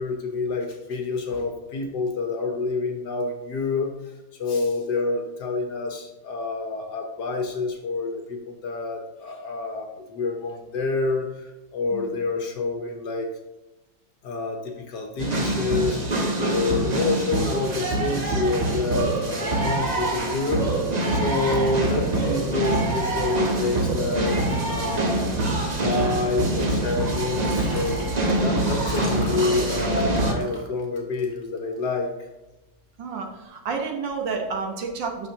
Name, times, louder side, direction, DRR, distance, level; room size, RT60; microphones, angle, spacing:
voice 1, 0.0-4.1 4.4-11.4 11.7-13.3 14.2-16.0 16.4-25.3 25.8-32.1, left 3 dB, 60° left, 4 dB, 1.4 m, -28 dB
sound 1, 15.2-30.3, right 2 dB, 45° right, 0.5 m, -25 dB
Liquid, 27.3-32.0 32.5-32.7 33.0-33.1, left 1 dB, 15° left, 1.0 m, -39 dB
voice 2, 33.0-35.3, right 4 dB, 65° right, 2 dB, 1.7 m, -30 dB
9.0 x 6.4 x 2.9 m, 1.0 s
omnidirectional pair, 2.2 m